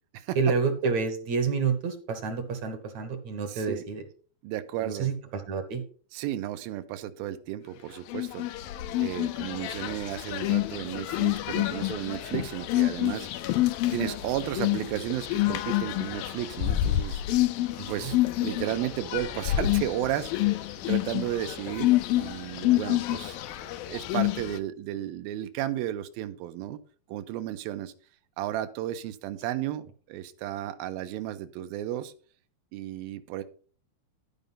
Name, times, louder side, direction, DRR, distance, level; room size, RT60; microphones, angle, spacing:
voice 1, 0.4-4.0 4.8-5.8 17.8-18.1, right 5 dB, 60° right, 8 dB, 2.2 m, -29 dB
voice 2, 3.5-3.8 4.4-5.1 6.1-8.5 9.0-13.6 13.9-17.2 17.9-20.6 20.9-26.8 27.1-27.9 28.4-32.1 32.7-33.4, right 12 dB, 85° right, 10 dB, 2.7 m, -34 dB
sound 1, 8.1-24.6, left 15 dB, 90° left, 2.6 m, -28 dB
12.5 x 5.2 x 5.5 m, 0.42 s
omnidirectional pair, 4.2 m